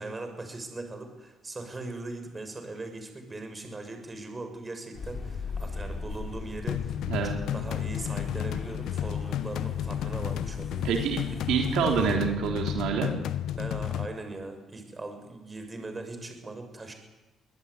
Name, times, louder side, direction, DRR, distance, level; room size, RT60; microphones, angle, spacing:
voice 1, 0.0-6.9 7.2-10.9 11.3-11.4 13.5-16.9, right 2 dB, 25° right, 7 dB, 6.4 m, -40 dB
sound 1, 4.9-12.2, left 3 dB, 45° left, 6.1 m, -39 dB
sound 2, 6.7-14.1, left 11 dB, 80° left, 1.0 m, -32 dB
voice 2, 7.1-7.4 10.8-11.2 11.5-13.1, right 6 dB, 85° right, 2 dB, 3.6 m, -27 dB
23.5 x 19.5 x 9.8 m, 1.1 s
cardioid pair, 90°, 0 cm